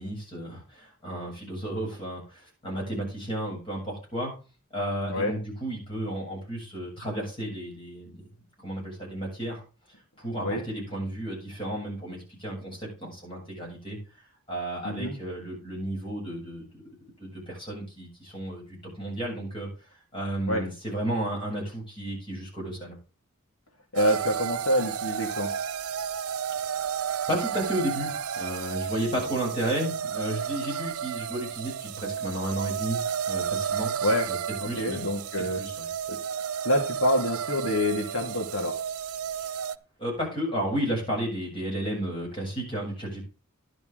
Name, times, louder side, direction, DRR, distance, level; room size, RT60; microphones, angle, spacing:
voice 1, 0.0-4.3 4.7-8.2 8.6-9.6 10.2-14.0 14.5-16.8 17.2-18.6 18.9-19.7 20.1-23.0 26.7-33.9 34.3-34.4 34.6-35.1 35.5-35.9 39.4-39.5 40.0-43.2, right 1 dB, 25° left, -3 dB, 7.8 m, -33 dB
voice 2, 23.9-25.5 34.0-34.3 34.6-35.6 36.1-36.2 36.6-38.8, left 1 dB, 70° left, 3 dB, 2.1 m, -26 dB
sound 1, 24.0-39.8, right 8 dB, 80° right, 0.5 m, -32 dB
11.5 x 11.0 x 3.8 m, 0.34 s
head